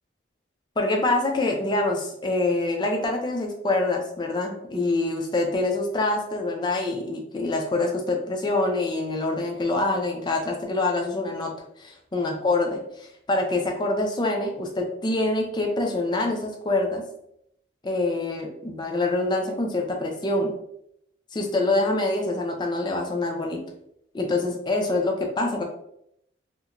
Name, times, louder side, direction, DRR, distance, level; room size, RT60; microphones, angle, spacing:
voice 1, 0.8-11.5 11.8-17.0 17.8-20.5 21.3-23.6 24.1-25.6, left 2 dB, 25° left, 2 dB, 0.4 m, -25 dB
2.4 x 2.1 x 2.9 m, 0.74 s
head